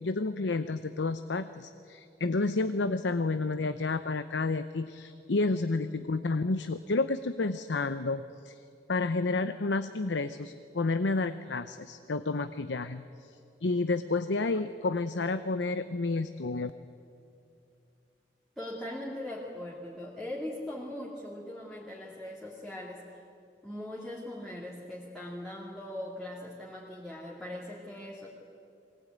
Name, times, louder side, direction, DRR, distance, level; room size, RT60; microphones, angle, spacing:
voice 1, 0.0-8.6 8.9-16.7, left 3 dB, 85° left, 11 dB, 0.7 m, -30 dB
voice 2, 18.6-23.0 23.6-28.3, left 1 dB, ahead, -7 dB, 2.6 m, -40 dB
23.5 x 19.0 x 9.4 m, 2.6 s
head